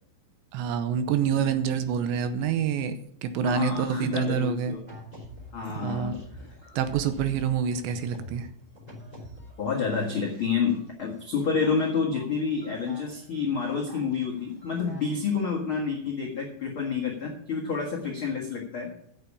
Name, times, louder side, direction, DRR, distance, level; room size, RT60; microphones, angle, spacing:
voice 1, 0.5-2.9 3.2-4.8 5.7-6.2 6.8-8.5, right 7 dB, 80° right, 10 dB, 3.0 m, -27 dB
voice 2, 3.4-4.8 5.5-6.2 9.6-18.9, left 5 dB, 80° left, -2 dB, 1.1 m, -29 dB
sound 1, 4.9-10.1 10.4-15.5, equal, 10° right, 2.1 m, -47 dB
9.3 x 6.8 x 8.5 m, 0.67 s
omnidirectional pair, 5.3 m